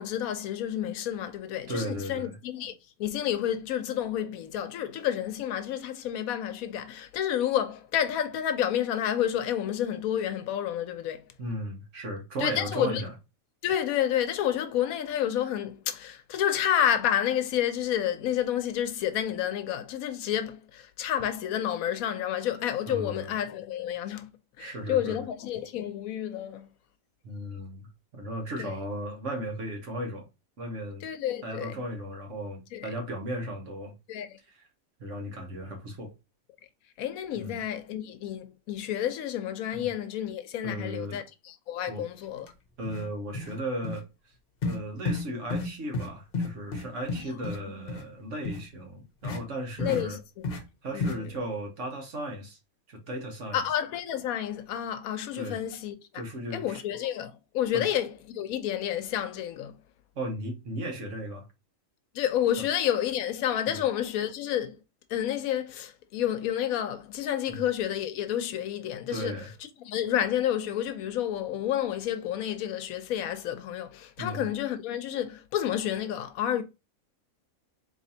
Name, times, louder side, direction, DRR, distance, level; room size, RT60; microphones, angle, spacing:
voice 1, 0.0-2.7 3.0-11.3 12.4-13.0 13.6-24.3 24.6-26.7 28.6-28.8 31.0-31.8 32.7-32.9 34.1-34.4 37.0-42.5 47.2-47.4 49.8-50.2 50.9-51.3 53.5-56.2 56.5-59.8 62.1-64.8 65.1-69.4 69.8-76.6, left 10 dB, 80° left, 1.0 m, -30 dB
voice 2, 1.7-2.4 11.4-13.1 22.9-23.3 24.6-25.2 27.2-30.3 30.6-31.1 31.4-33.9 34.5-34.7 35.0-36.1 37.3-37.6 39.7-39.9 40.6-41.2 41.9-42.0 42.8-44.0 44.6-50.2 50.8-52.6 52.9-53.6 55.3-55.6 56.1-56.8 57.7-57.9 60.1-61.5 62.6-62.7 63.7-63.8 67.5-67.6 69.1-69.5 74.2-74.4, right 1 dB, 60° right, 1.4 m, -36 dB
sound 1, 42.4-42.5 42.8-43.1 43.3-43.6 43.8-44.0 44.6-44.8 45.1-45.2 45.5-45.7 45.9-46.1 46.3-47.6 47.9-48.0 48.4-48.6 49.2-49.4 49.8-50.0 50.4-50.6 51.0-51.2, left 3 dB, 45° left, 0.9 m, -31 dB
4.1 x 3.2 x 2.7 m
omnidirectional pair, 1.5 m